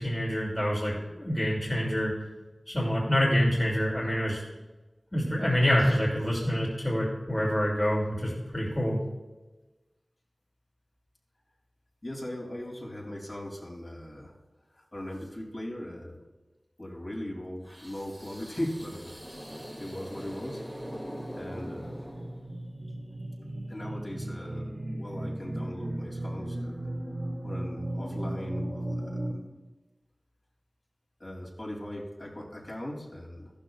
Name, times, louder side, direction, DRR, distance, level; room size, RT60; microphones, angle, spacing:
voice 1, 0.0-2.1 2.7-4.4 5.1-9.0, equal, 30° left, -4 dB, 2.6 m, -26 dB
voice 2, 12.0-14.3 14.7-16.2 16.8-19.1 19.8-20.6 21.3-22.1 23.7-26.9 27.4-29.4 31.2-33.5, left 1 dB, 45° left, -3 dB, 2.9 m, -39 dB
sound 1, 17.6-22.7, equal, 5° right, 2.3 m, -43 dB
sound 2, 19.6-29.3, right 1 dB, 25° right, 2.9 m, -36 dB
14.0 x 12.0 x 2.4 m, 1.2 s
wide cardioid pair, 45°, 0 cm